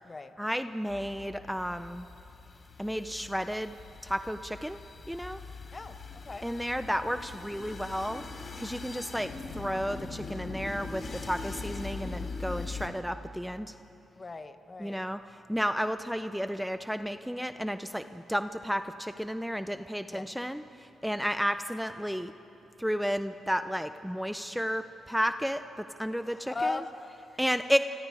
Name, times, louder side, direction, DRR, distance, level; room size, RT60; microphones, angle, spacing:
voice 1, 0.4-2.1 2.8-3.8 4.0-4.8 5.1-5.4 6.4-8.2 8.6-13.7 14.8-22.3 22.8-25.6 26.0-26.8 27.4-27.8, equal, ahead, 9 dB, 0.8 m, -32 dB
sound 1, 0.9-12.9, left 4 dB, 50° left, 3.1 m, -42 dB
voice 2, 5.7-6.5 14.1-15.0 20.1-20.3 26.2-27.4, left 3 dB, 35° left, 8 dB, 1.5 m, -38 dB
28.5 x 26.5 x 4.9 m, 2.9 s
supercardioid pair, 55°, 0 cm